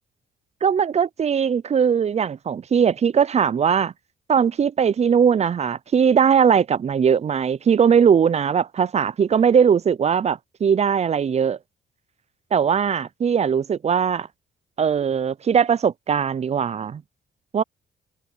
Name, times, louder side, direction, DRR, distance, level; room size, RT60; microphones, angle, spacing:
voice 1, 0.6-3.9 4.3-11.6 12.5-14.3 14.8-17.0 17.5-17.6, right 7 dB, 35° right, 0.5 m, -20 dB
cardioid pair, 90°, 20 cm